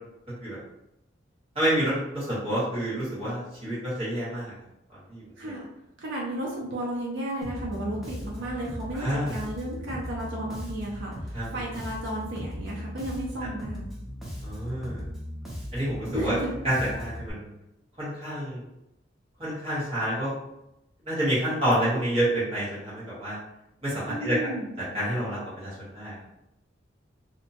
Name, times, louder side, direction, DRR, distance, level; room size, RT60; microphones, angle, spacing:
voice 1, 1.5-4.5 5.1-5.5 8.9-9.3 11.3-11.6 13.4-13.5 14.4-15.1 15.7-16.3 16.6-17.5 18.0-18.6 19.4-20.3 21.0-23.4 23.8-24.4 24.9-26.2, right 1 dB, 30° right, -10 dB, 1.4 m, -28 dB
voice 2, 5.4-5.7 6.0-13.8 16.1-16.5 24.1-24.7, right 1 dB, 65° right, -3 dB, 0.5 m, -33 dB
Bass guitar, 7.4-17.3, equal, ahead, 0.5 m, -38 dB
2.8 x 2.1 x 2.7 m, 0.88 s
head